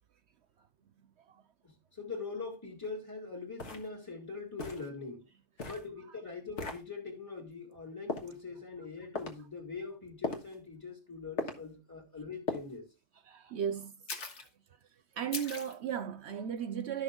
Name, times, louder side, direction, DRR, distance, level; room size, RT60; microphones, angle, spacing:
voice 1, 1.6-5.2 5.6-12.9, left 4 dB, 15° left, 2.1 m, -43 dB
sound 1, 2.8-2.9 3.6-3.9 4.6-4.9 5.6-5.9 6.6-6.8 8.1-8.3 9.2-9.4 10.2-10.5 11.4-11.6 12.5-12.7 14.1-14.5 15.3-15.8, left 2 dB, 70° left, 1.8 m, -37 dB
voice 2, 13.3-13.9 15.2-17.0, right 8 dB, 65° right, 0.9 m, -35 dB
12.5 x 6.3 x 3.6 m
omnidirectional pair, 1.3 m